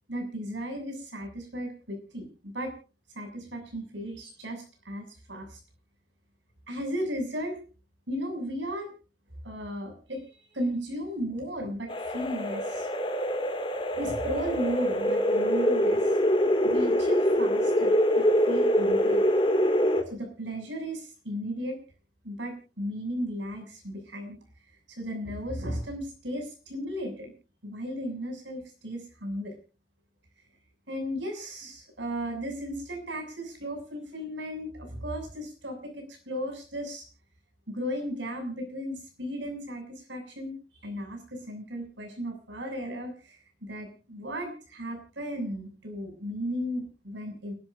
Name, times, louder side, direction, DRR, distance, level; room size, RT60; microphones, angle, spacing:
voice 1, 0.1-2.7 3.1-5.6 6.7-7.6 8.1-8.9 9.4-10.2 10.5-12.9 14.0-16.2 16.6-19.3 20.1-21.8 22.2-24.4 25.0-27.3 27.6-29.5 30.9-37.0 37.7-40.6 40.8-47.5, equal, 85° right, 3 dB, 7.1 m, -35 dB
sound 1, 11.9-20.0, equal, 25° left, 2.3 m, -24 dB
29.5 x 12.0 x 2.6 m, 0.35 s
head